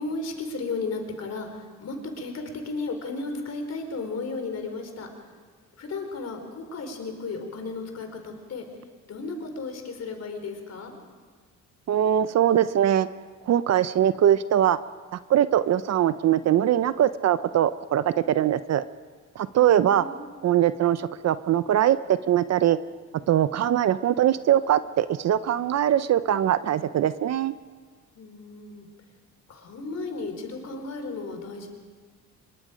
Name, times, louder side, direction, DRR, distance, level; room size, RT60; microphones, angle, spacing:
voice 1, 0.0-1.5 1.8-2.3 2.6-5.1 5.8-8.7 9.1-10.9 19.5-20.2 28.1-28.9 29.5-31.7, left 3 dB, 55° left, 5 dB, 4.3 m, -34 dB
voice 2, 11.9-13.1 13.5-14.8 15.1-18.8 19.4-20.1 20.4-22.8 23.3-27.5, right 11 dB, 60° right, 14 dB, 0.7 m, -22 dB
25.0 x 22.5 x 5.2 m, 1.5 s
cardioid pair, 90°, 30 cm